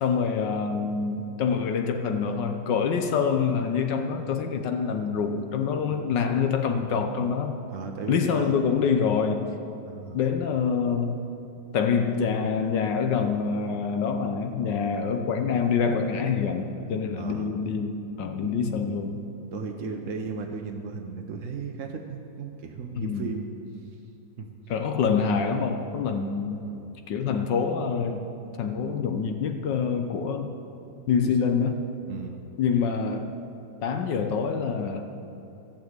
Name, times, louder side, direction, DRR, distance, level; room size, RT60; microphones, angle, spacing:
voice 1, 0.0-7.6 8.1-9.4 10.1-11.2 11.7-19.2 23.0-23.3 24.7-26.6 27.1-28.2 28.6-30.5 31.1-31.8 32.6-33.3 33.8-35.1, left 6 dB, 70° left, 6 dB, 1.4 m, -26 dB
voice 2, 7.7-8.7 9.9-10.2 17.2-17.5 19.5-23.5 24.4-24.5 26.7-26.9 31.0-31.3 32.1-32.4, right 5 dB, 55° right, 3 dB, 0.9 m, -36 dB
14.5 x 7.3 x 8.0 m, 2.7 s
omnidirectional pair, 2.1 m